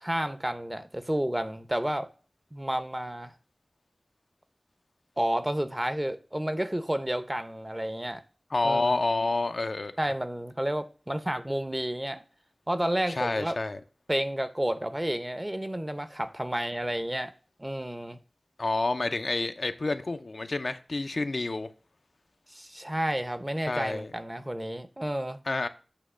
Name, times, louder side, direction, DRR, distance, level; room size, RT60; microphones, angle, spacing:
voice 1, 0.0-2.1 2.5-3.3 5.2-8.2 8.6-9.0 10.0-12.2 12.7-13.5 14.1-17.3 17.6-18.2 22.5-25.4, right 1 dB, 20° right, 0.8 m, -31 dB
voice 2, 8.5-9.9 13.1-13.8 18.6-21.7 23.7-24.1 25.5-25.7, left 2 dB, 70° left, 0.6 m, -28 dB
8.5 x 3.0 x 6.2 m
wide cardioid pair, 50°, 0 cm